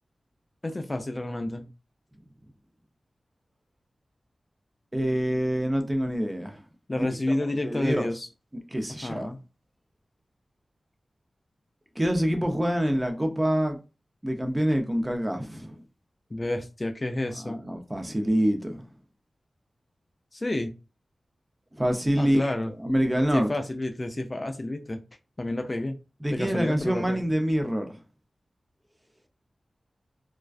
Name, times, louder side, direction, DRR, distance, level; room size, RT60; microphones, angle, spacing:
voice 1, 0.6-1.7 6.9-8.3 9.0-9.4 16.3-17.6 20.3-20.7 22.2-22.7 23.3-25.0 25.4-26.0 26.3-27.2, left 1 dB, 35° left, 0.3 m, -30 dB
voice 2, 4.9-6.6 7.0-7.1 7.6-8.1 8.7-9.3 12.0-13.8 14.2-15.7 17.4-18.8 21.8-22.5 22.8-23.5 26.2-27.9, equal, 20° right, 0.5 m, -26 dB
2.4 x 2.2 x 2.3 m
cardioid pair, 55°, 0 cm